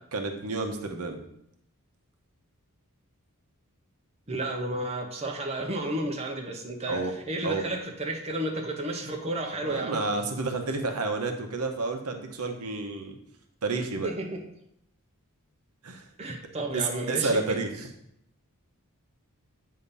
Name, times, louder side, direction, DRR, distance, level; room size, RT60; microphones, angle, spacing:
voice 1, 0.1-1.2 6.9-7.1 7.4-7.6 9.6-13.2 13.6-14.1 15.8-16.0 16.7-17.9, right 3 dB, 80° right, 5 dB, 0.9 m, -30 dB
voice 2, 4.3-10.0 14.0-14.4 16.2-17.6, right 1 dB, 30° right, 2 dB, 0.7 m, -32 dB
8.3 x 2.8 x 5.3 m, 0.75 s
head